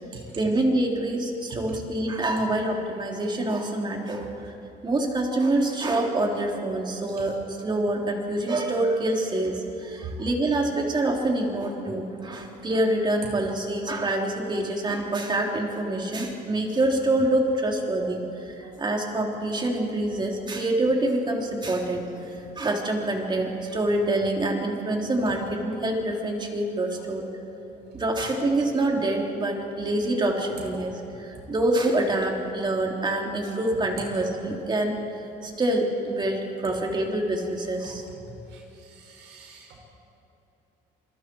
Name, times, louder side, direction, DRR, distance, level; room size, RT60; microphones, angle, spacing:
voice 1, 0.1-4.5 4.8-22.0 22.5-27.2 27.9-35.0 35.4-38.1, right 1 dB, 25° right, 1 dB, 3.4 m, -26 dB
voice 2, 38.5-39.8, right 8 dB, 85° right, -1 dB, 5.9 m, -45 dB
28.0 x 22.0 x 4.7 m, 3.0 s
cardioid pair, 110°, 17 cm